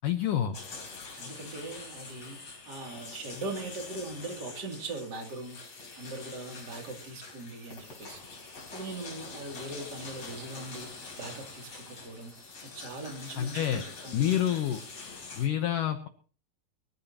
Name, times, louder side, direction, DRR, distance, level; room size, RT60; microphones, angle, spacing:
voice 1, 0.0-0.6 13.4-13.8 14.1-14.8 15.3-16.1, left 10 dB, 70° left, 6 dB, 2.2 m, -28 dB
sound 1, 0.5-15.5, left 4 dB, 40° left, 4.8 m, -45 dB
voice 2, 1.1-2.4 2.6-12.3 12.7-14.3, right 2 dB, 30° right, 3 dB, 2.9 m, -41 dB
24.0 x 14.5 x 2.9 m, 0.40 s
omnidirectional pair, 4.7 m